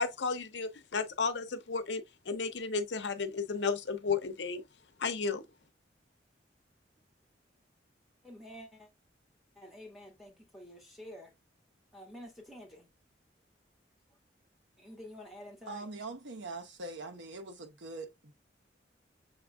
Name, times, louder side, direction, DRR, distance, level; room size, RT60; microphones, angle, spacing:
voice 1, 0.0-4.6 5.0-5.4, left 4 dB, 70° left, 0.7 m, -33 dB
voice 2, 8.2-8.9 9.6-11.3 11.9-12.9 14.8-15.8, left 1 dB, ahead, 1.5 m, -49 dB
voice 3, 15.7-18.3, right 2 dB, 80° right, 0.9 m, -43 dB
6.5 x 3.6 x 2.3 m
head